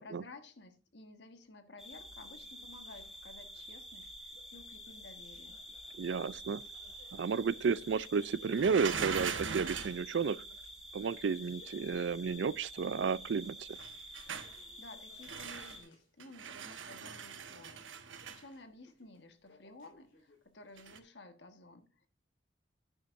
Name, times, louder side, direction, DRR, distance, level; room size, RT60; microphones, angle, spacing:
voice 1, 0.0-5.6 14.8-22.1, left 2 dB, 65° left, 1.4 m, -54 dB
sound 1, 1.8-15.8, equal, ahead, 2.9 m, -49 dB
sound 2, 1.9-20.4, left 2 dB, 90° left, 4.2 m, -66 dB
voice 2, 6.0-6.6 7.1-10.4 10.9-13.8, right 5 dB, 70° right, 0.4 m, -32 dB
sound 3, 8.6-10.0 13.8-14.6 15.2-15.8 16.2-18.4 20.8-21.0, right 6 dB, 85° right, 1.1 m, -40 dB
10.5 x 9.7 x 2.6 m
head